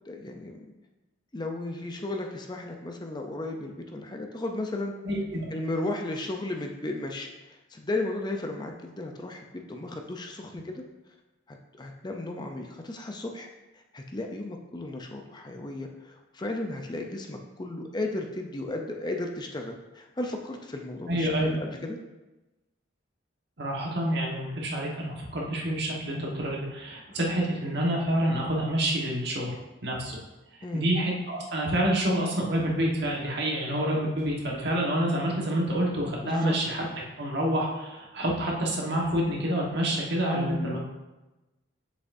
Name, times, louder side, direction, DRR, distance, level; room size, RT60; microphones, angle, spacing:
voice 1, 0.1-0.6 1.3-4.9 5.5-10.8 11.5-13.5 13.9-22.0 30.6-30.9 36.2-36.5 40.3-40.8, left 2 dB, 20° left, 3 dB, 0.5 m, -35 dB
voice 2, 5.0-5.4 21.1-21.5 23.6-29.5 29.8-30.2 30.7-36.8 37.2-40.8, right 1 dB, 60° right, -2 dB, 1.4 m, -28 dB
7.6 x 6.6 x 2.7 m, 1.1 s
head